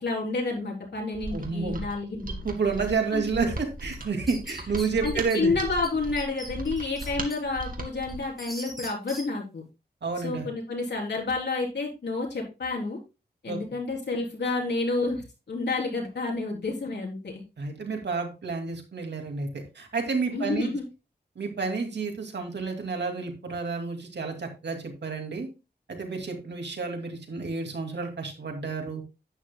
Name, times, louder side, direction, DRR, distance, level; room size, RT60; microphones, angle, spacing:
voice 1, 0.0-2.3 3.1-3.2 5.0-9.6 10.2-13.0 13.4-17.4 20.3-20.8, left 3 dB, 75° left, -1 dB, 3.8 m, -30 dB
Mechanisms, 1.1-8.4, right 2 dB, 55° right, 2.1 m, -38 dB
voice 2, 1.3-1.8 2.4-5.5 10.0-10.5 13.5-13.6 17.6-20.7 21.4-25.5 25.9-29.0, right 4 dB, 85° right, 3 dB, 2.4 m, -30 dB
sound 1, 3.9-5.4 5.8-5.9 6.2-7.4 7.8-9.2, equal, ahead, 5.3 m, -41 dB
11.0 x 9.6 x 2.3 m, 0.28 s
wide cardioid pair, 85°, 18 cm